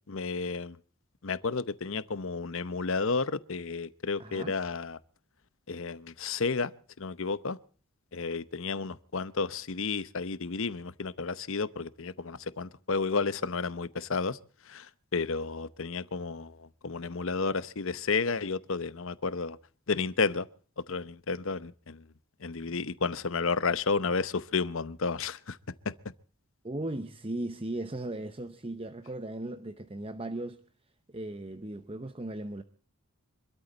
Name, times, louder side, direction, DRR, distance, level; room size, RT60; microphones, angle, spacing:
voice 1, 0.1-0.8 1.2-5.0 5.7-6.7 7.0-7.6 8.1-14.4 14.7-19.6 19.9-20.5 20.8-22.0 22.4-25.6 25.8-25.9, left 4 dB, 60° left, 0.8 m, -32 dB
voice 2, 4.2-4.6 26.6-30.6 31.1-32.6, right 1 dB, 25° right, 0.8 m, -37 dB
26.0 x 13.0 x 4.0 m
head